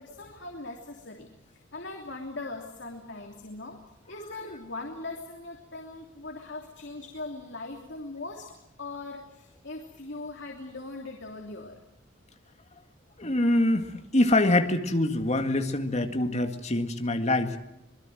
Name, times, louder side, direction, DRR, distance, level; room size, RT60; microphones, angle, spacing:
voice 1, 0.0-3.8 4.1-11.8, left 2 dB, 65° left, 2 dB, 3.0 m, -40 dB
voice 2, 13.2-17.6, left 1 dB, 35° left, 6 dB, 2.0 m, -25 dB
25.5 x 21.5 x 7.8 m, 0.86 s
head